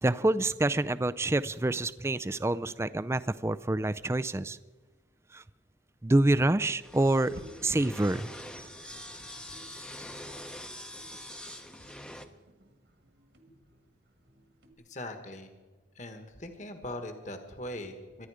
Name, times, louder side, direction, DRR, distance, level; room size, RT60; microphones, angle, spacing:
voice 1, 0.0-4.6 5.3-5.4 6.0-7.3 7.6-8.3, right 2 dB, 15° right, 15 dB, 0.4 m, -27 dB
sound 1, 6.8-12.3, left 1 dB, 5° left, 0.8 m, -44 dB
sound 2, 7.2-14.7, right 1 dB, 65° right, 2.0 m, -54 dB
voice 2, 14.9-15.5 15.9-18.3, left 1 dB, 40° left, 6 dB, 1.5 m, -40 dB
24.5 x 10.5 x 5.0 m, 1.3 s
head